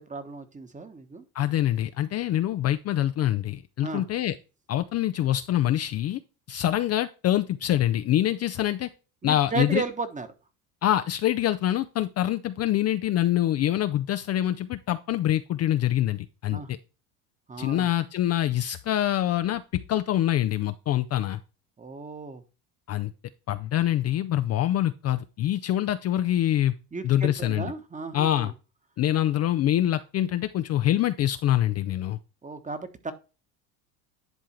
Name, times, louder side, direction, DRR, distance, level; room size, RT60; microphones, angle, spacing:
voice 1, 0.0-1.2 3.8-4.1 9.2-10.3 16.5-16.7 17.5-17.9 21.8-22.4 26.9-28.5 32.4-33.1, right 4 dB, 15° right, 11 dB, 1.1 m, -34 dB
voice 2, 1.3-4.3 4.7-6.2 6.5-8.9 9.2-9.8 10.8-16.6 17.6-21.4 22.9-23.1 23.5-26.7 27.0-27.7 28.1-28.5 29.0-32.2, left 12 dB, 35° left, 10 dB, 0.5 m, -25 dB
10.5 x 3.6 x 4.4 m, 0.32 s
hypercardioid pair, 85°, 44 cm